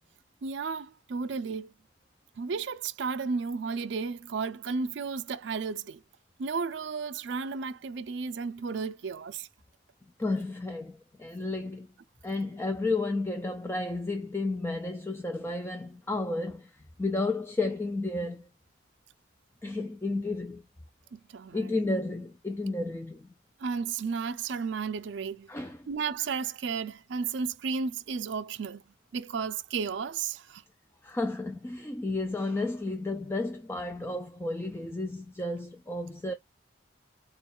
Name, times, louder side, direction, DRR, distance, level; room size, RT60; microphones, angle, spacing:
voice 1, 0.4-1.7 2.4-6.0 6.4-9.5 21.1-21.8 23.6-25.5 25.9-28.8 29.1-30.6, right 5 dB, 65° right, 0.4 m, -33 dB
voice 2, 10.2-11.9 12.2-18.5 19.6-20.6 21.5-23.3 25.5-25.9 31.0-36.3, left 2 dB, 10° left, 0.3 m, -32 dB
3.9 x 2.3 x 4.3 m
head